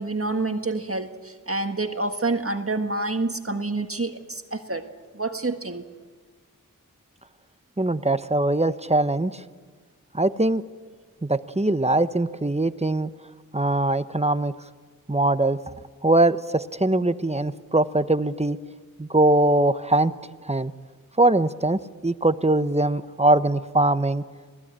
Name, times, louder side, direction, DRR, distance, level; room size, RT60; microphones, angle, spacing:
voice 1, 0.0-4.9 5.1-5.9, right 2 dB, 40° right, 6 dB, 1.7 m, -28 dB
voice 2, 7.8-9.4 10.1-10.6 11.2-13.1 13.5-14.5 15.1-15.6 16.0-18.6 19.0-20.1 20.4-20.7 21.2-24.2, right 2 dB, 20° right, 12 dB, 0.9 m, -22 dB
26.5 x 18.5 x 8.9 m, 1.5 s
wide cardioid pair, 40°, 34 cm